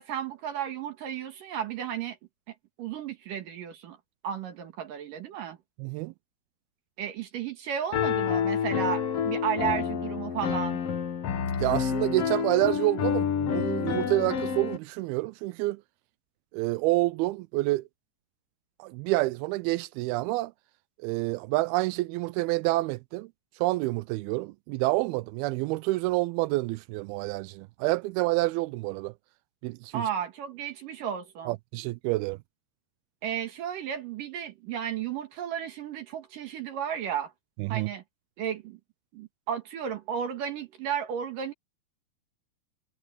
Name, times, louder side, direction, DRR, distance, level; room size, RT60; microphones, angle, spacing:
voice 1, 0.0-2.2 2.5-4.0 4.2-5.6 7.0-10.8 29.9-31.6 33.2-37.3 37.7-38.0 38.4-38.8 39.1-41.5, right 9 dB, 65° right, 3.0 m, -33 dB
voice 2, 5.8-6.1 11.6-15.8 16.5-17.8 18.8-20.5 21.0-23.3 23.6-29.1 29.6-30.0 31.5-32.4 37.6-37.9, right 20 dB, 85° right, 2.4 m, -28 dB
Piano, 7.9-14.8, left 8 dB, 55° left, 1.8 m, -28 dB
omnidirectional pair, 4.4 m